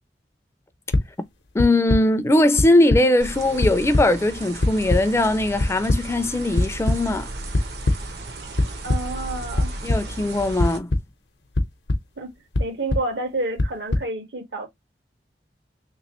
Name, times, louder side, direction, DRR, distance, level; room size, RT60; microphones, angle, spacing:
sound 1, 0.9-1.0 1.6-2.0 2.6-3.0 3.4-4.0 4.6-5.0 5.6-6.0 6.6-7.0 7.5-8.0 8.6-9.0 9.6-10.0 10.6-11.0 11.5-12.0 12.5-13.0 13.6-14.0, left 2 dB, 75° left, 0.7 m, -20 dB
voice 1, 1.5-7.3 9.8-10.9, left 1 dB, 15° left, 0.3 m, -20 dB
sound 2, 3.2-10.8, right 2 dB, 65° right, 0.8 m, -35 dB
voice 2, 8.8-9.7 12.2-12.3 12.6-14.7, right 2 dB, 85° right, 1.3 m, -29 dB
3.2 x 3.0 x 2.9 m
head